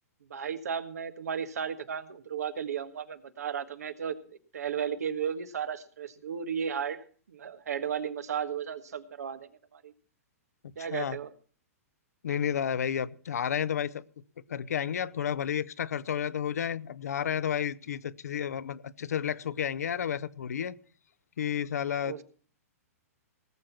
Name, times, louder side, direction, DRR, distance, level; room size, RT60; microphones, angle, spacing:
voice 1, 0.3-9.9 10.7-11.3 21.9-22.2, right 7 dB, 80° right, 1.5 m, -35 dB
voice 2, 12.2-14.0 14.5-20.8 21.4-22.2, left 8 dB, 80° left, 0.8 m, -31 dB
19.0 x 7.6 x 5.8 m
hypercardioid pair, 125°, 8 cm